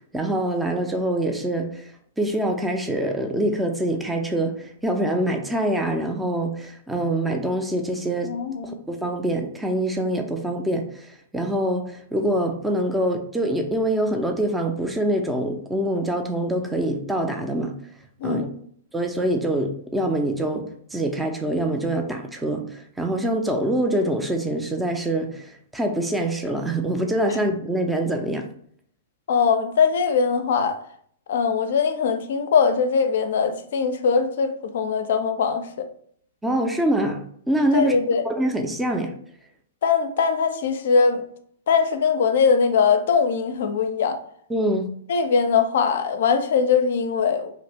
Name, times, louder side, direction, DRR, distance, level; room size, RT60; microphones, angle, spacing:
voice 1, 0.1-1.9 2.2-8.3 8.6-17.7 18.2-18.5 18.9-28.5 36.4-38.0 38.2-39.1 44.5-44.9, right 1 dB, 5° right, 0.4 m, -25 dB
voice 2, 8.2-8.8 18.2-18.5 29.3-30.8 31.3-35.9 37.7-38.2 39.8-41.2 41.7-44.2 45.1-47.5, left 6 dB, 60° left, 0.4 m, -21 dB
3.0 x 2.4 x 3.3 m
figure-of-eight pair, 110°, 0 cm